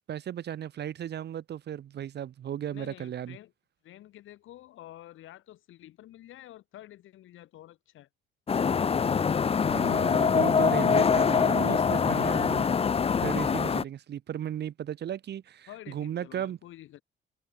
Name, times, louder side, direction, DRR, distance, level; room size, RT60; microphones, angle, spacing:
voice 1, 0.1-3.4 9.7-12.7 13.2-16.6, right 10 dB, 55° right, 1.0 m, -35 dB
voice 2, 2.7-3.5 3.8-8.1 15.7-17.0, left 14 dB, 80° left, 5.9 m, -49 dB
sound 1, 8.5-13.8, left 6 dB, 30° left, 0.6 m, -24 dB
cardioid pair, 90°, 20 cm